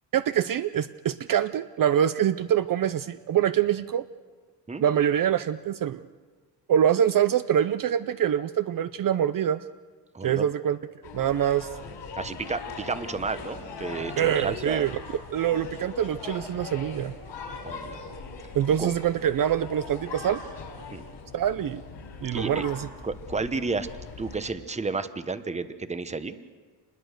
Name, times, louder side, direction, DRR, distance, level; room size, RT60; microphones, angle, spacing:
voice 1, 0.1-4.0 4.8-6.0 6.7-9.6 10.2-10.8 11.1-11.7 14.2-14.9 15.3-17.1 18.5-20.4 21.3-21.8 22.2-22.9, right 10 dB, 50° right, 13 dB, 0.6 m, -24 dB
voice 2, 10.1-10.4 12.1-14.9 17.6-18.0 18.8-18.9 20.9-21.0 22.3-22.7 23.0-23.9 24.2-26.4, right 4 dB, 15° right, 12 dB, 1.0 m, -32 dB
sound 1, 11.0-24.5, left 4 dB, 90° left, 4.7 m, -40 dB
26.5 x 21.0 x 6.6 m, 1.5 s
cardioid pair, 130°, 42 cm